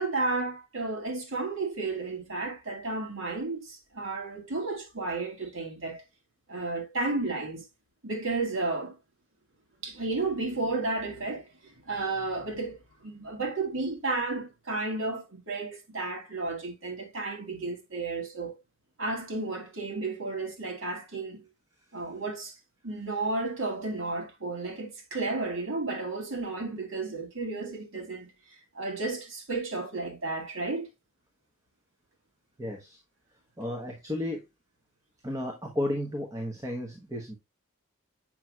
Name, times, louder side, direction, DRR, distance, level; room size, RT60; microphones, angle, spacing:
voice 1, 0.0-6.0 6.5-7.6 8.0-9.0 9.8-18.5 19.0-21.5 21.9-22.6 22.8-28.3 28.7-30.9, right 3 dB, 65° right, 2.1 m, -32 dB
voice 2, 32.6-33.0 33.6-34.5 35.2-37.4, left 1 dB, 15° right, 1.1 m, -33 dB
7.5 x 6.2 x 2.3 m
head